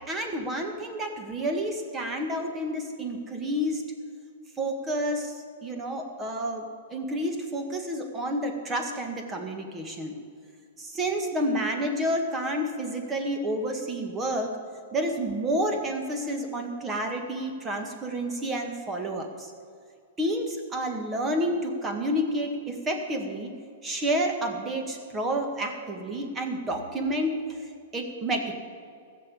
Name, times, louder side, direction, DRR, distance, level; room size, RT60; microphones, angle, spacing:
voice 1, 0.0-3.8 4.6-10.1 10.8-14.5 14.9-19.5 20.2-23.5 23.8-27.6 27.9-28.6, right 1 dB, 20° right, 4 dB, 1.9 m, -30 dB
15.0 x 6.9 x 8.4 m, 2.3 s
hypercardioid pair, 135°, 0 cm